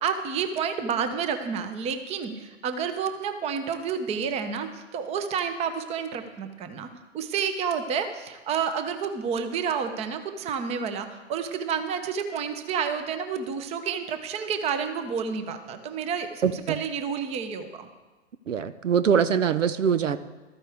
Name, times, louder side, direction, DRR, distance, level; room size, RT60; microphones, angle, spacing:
voice 1, 0.0-6.9 7.1-17.9, right 6 dB, 15° right, 9 dB, 0.8 m, -30 dB
voice 2, 16.4-16.8 18.5-20.2, right 7 dB, 80° right, 14 dB, 0.8 m, -23 dB
14.5 x 13.5 x 3.5 m, 1.2 s
hypercardioid pair, 125°, 37 cm